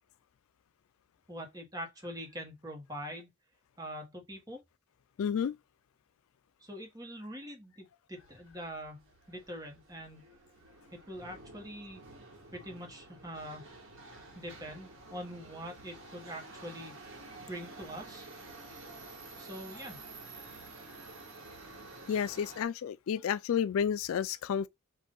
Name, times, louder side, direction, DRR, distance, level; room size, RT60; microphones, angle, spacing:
voice 1, 1.3-3.3 3.8-4.6 6.6-10.2 10.9-12.0 12.5-13.7 14.3-17.2 17.5-18.3 19.4-20.0, equal, 15° right, 1.3 m, -44 dB
voice 2, 5.2-5.6 22.1-24.7, left 8 dB, 70° left, 0.3 m, -31 dB
Subway metro underground, 8.2-22.6, right 2 dB, 65° right, 1.6 m, -50 dB
5.2 x 2.7 x 3.8 m
head